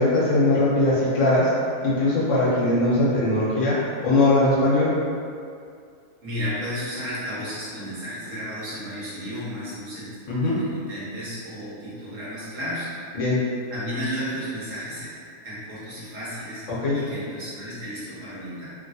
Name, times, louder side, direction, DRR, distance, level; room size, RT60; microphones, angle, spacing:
voice 1, 0.0-1.5 1.8-3.7 4.0-4.9 10.3-10.6 13.1-13.4 16.7-17.0, left 2 dB, 65° left, -9 dB, 1.2 m, -20 dB
voice 2, 6.2-10.1 10.4-12.9 13.7-15.1 15.4-16.6 16.9-18.7, equal, 70° right, -10 dB, 1.5 m, -33 dB
3.0 x 2.6 x 2.7 m, 2.3 s
omnidirectional pair, 1.4 m